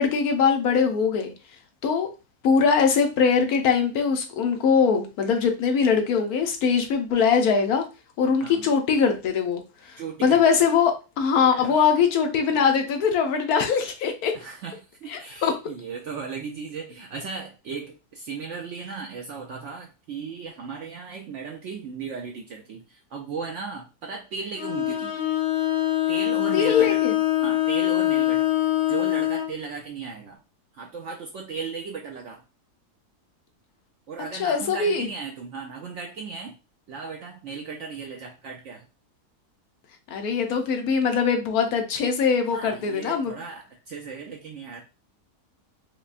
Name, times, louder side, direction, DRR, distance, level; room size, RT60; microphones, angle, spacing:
voice 1, 0.0-1.3 1.8-2.1 2.4-7.8 8.2-14.3 15.1-15.5 26.5-27.1 34.4-35.1 40.1-43.3, left 6 dB, 70° left, 5 dB, 1.1 m, -22 dB
voice 2, 9.9-10.4 11.5-11.8 14.3-25.1 26.1-27.0 27.4-30.4 30.7-32.4 34.1-36.5 36.9-38.9 42.5-44.8, right 5 dB, 70° right, 2 dB, 0.7 m, -36 dB
Bowed string instrument, 24.6-29.5, left 14 dB, 55° left, 0.7 m, -23 dB
4.9 x 2.2 x 2.4 m, 0.30 s
omnidirectional pair, 1.7 m